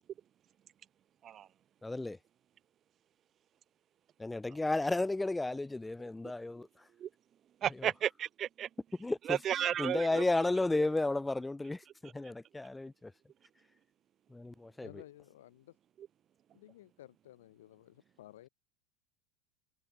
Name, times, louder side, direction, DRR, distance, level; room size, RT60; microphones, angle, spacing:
voice 1, 1.8-2.2 4.2-6.7 7.8-7.9 9.0-9.4 9.8-13.1 14.3-14.9, left 2 dB, 10° left, 0.6 m, -33 dB
voice 2, 7.6-8.7 9.2-10.2, right 10 dB, 40° right, 0.9 m, -33 dB
voice 3, 14.8-15.8 16.5-18.5, left 14 dB, 75° left, 4.9 m, -55 dB
hypercardioid pair, 90°, 0 cm